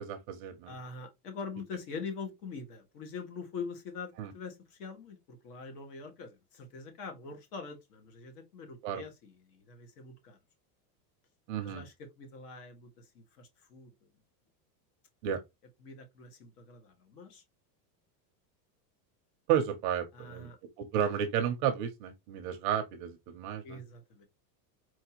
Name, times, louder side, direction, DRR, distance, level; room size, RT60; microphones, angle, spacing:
voice 1, 0.0-0.7 4.2-4.3 8.8-9.0 11.5-11.8 15.2-15.4 19.5-20.5 20.8-23.8, right 9 dB, 30° right, 0.5 m, -32 dB
voice 2, 0.7-10.4 11.6-13.9 15.8-17.4 20.1-20.6 23.6-24.3, left 4 dB, 65° left, 1.8 m, -44 dB
4.7 x 3.4 x 2.9 m
supercardioid pair, 170°, 50 cm